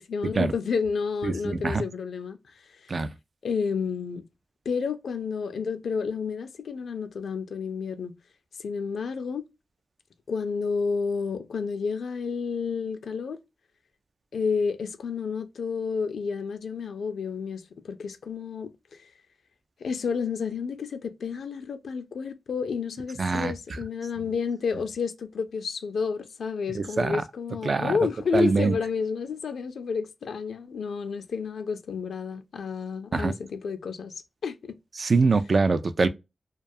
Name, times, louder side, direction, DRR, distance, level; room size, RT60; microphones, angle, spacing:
voice 1, 0.0-2.4 3.4-4.2 4.7-8.1 8.6-9.4 10.3-13.4 14.3-19.1 19.8-34.8, left 5 dB, 85° left, 0.4 m, -30 dB
voice 2, 1.2-1.8 2.9-3.1 23.2-23.5 26.7-27.2 27.6-27.9 28.3-28.7 33.1-33.3 35.0-36.1, right 4 dB, 60° right, 0.3 m, -23 dB
2.3 x 2.2 x 2.6 m
cardioid pair, 50°, 0 cm